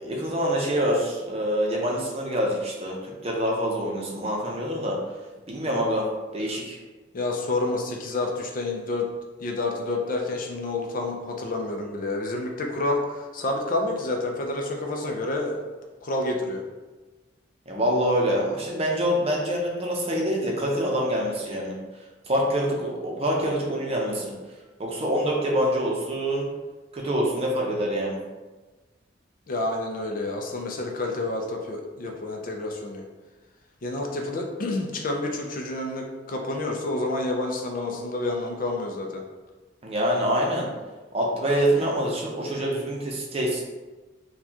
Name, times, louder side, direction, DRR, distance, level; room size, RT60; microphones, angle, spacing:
voice 1, 0.0-5.0 5.5-6.1 6.3-6.8 17.7-21.8 22.3-24.3 24.8-26.5 26.9-28.2 39.8-40.7 41.1-43.6, equal, 35° right, -2 dB, 0.6 m, -25 dB
voice 2, 7.1-9.1 9.4-15.7 16.0-16.6 29.5-33.0 33.8-39.2, left 2 dB, 45° left, 1 dB, 0.5 m, -29 dB
4.4 x 2.3 x 2.8 m, 1.2 s
head